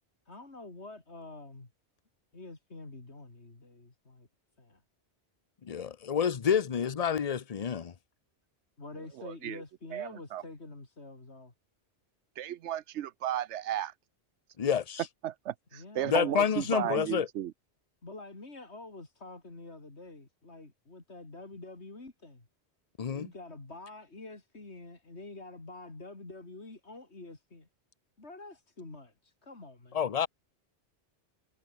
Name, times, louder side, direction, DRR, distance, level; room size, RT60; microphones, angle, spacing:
voice 1, 0.3-1.7 2.3-4.3 4.6-4.8 8.8-11.5 15.7-17.1 18.0-22.5 23.1-27.7 28.2-30.0, left 2 dB, 75° left, 4.0 m, -47 dB
voice 2, 5.6-7.9 14.6-15.1 16.0-17.3 23.0-23.3 29.9-30.3, left 7 dB, 40° left, 0.8 m, -29 dB
voice 3, 9.2-9.6 9.9-10.4 12.4-13.9 15.2-17.5, right 11 dB, 85° right, 1.0 m, -34 dB
omnidirectional pair, 1.1 m